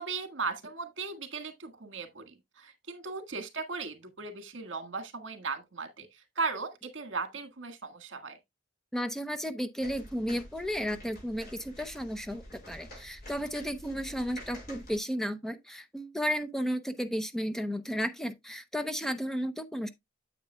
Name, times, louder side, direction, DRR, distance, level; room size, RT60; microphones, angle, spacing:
voice 1, 0.0-6.1 6.3-8.4, right 4 dB, 75° right, 1.7 m, -37 dB
voice 2, 8.9-19.9, equal, ahead, 0.5 m, -33 dB
sound 1, 9.8-15.0, left 1 dB, 50° left, 5.5 m, -48 dB
9.0 x 7.9 x 2.2 m
head